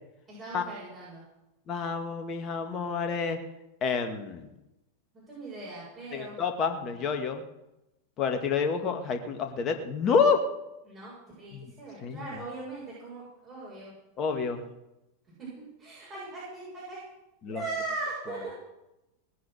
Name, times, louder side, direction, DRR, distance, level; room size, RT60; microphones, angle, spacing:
voice 1, 0.3-1.2 5.1-6.4 10.9-13.9 15.4-17.0 17.5-18.5, right 3 dB, 25° right, -7 dB, 7.8 m, -39 dB
voice 2, 1.7-3.4 3.8-4.4 6.1-7.4 8.2-10.4 11.5-11.7 12.0-12.2 14.2-14.6 17.4-17.6, left 5 dB, 30° left, 5 dB, 2.1 m, -28 dB
19.5 x 9.4 x 6.5 m, 0.94 s
figure-of-eight pair, 90°, 0 cm